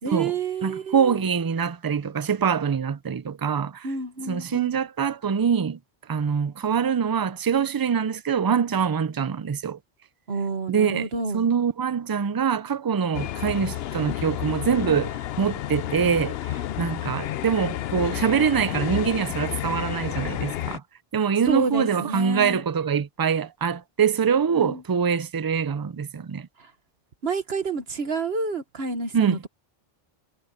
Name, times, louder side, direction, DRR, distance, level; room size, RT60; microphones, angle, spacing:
voice 1, 0.0-1.2 3.8-4.7 10.3-11.4 21.4-22.6 24.5-24.8 26.6-26.7 27.2-29.5, right 4 dB, 80° right, 1.6 m, -29 dB
voice 2, 0.6-3.9 4.3-5.8 6.1-9.8 10.7-11.1 11.3-20.8 21.1-26.5 29.1-29.4, right 7 dB, 40° right, 0.3 m, -24 dB
sound 1, 13.1-20.8, left 12 dB, 75° left, 0.8 m, -31 dB
omnidirectional pair, 1.0 m